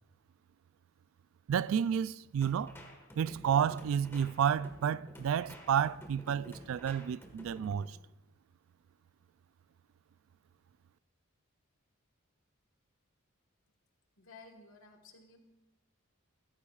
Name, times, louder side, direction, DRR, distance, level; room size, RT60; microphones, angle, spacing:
voice 1, 1.5-2.7 3.2-8.0, right 8 dB, 65° right, 0.3 m, -31 dB
sound 1, 2.4-7.9, equal, 10° left, 1.5 m, -52 dB
voice 2, 14.2-15.4, left 3 dB, 70° left, 1.5 m, -55 dB
15.0 x 13.5 x 2.4 m
head